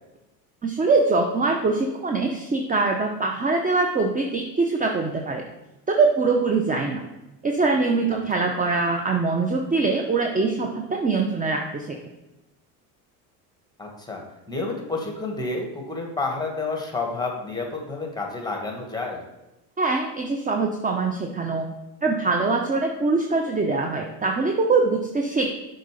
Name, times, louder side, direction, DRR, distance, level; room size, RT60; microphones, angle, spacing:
voice 1, 0.6-5.4 5.9-7.0 7.4-12.0 19.8-21.7 22.0-25.5, right 3 dB, 20° right, 2 dB, 0.7 m, -23 dB
voice 2, 8.1-8.5 13.8-19.2, left 3 dB, 10° left, 1 dB, 1.8 m, -30 dB
6.5 x 3.9 x 5.1 m, 0.98 s
supercardioid pair, 85°, 44 cm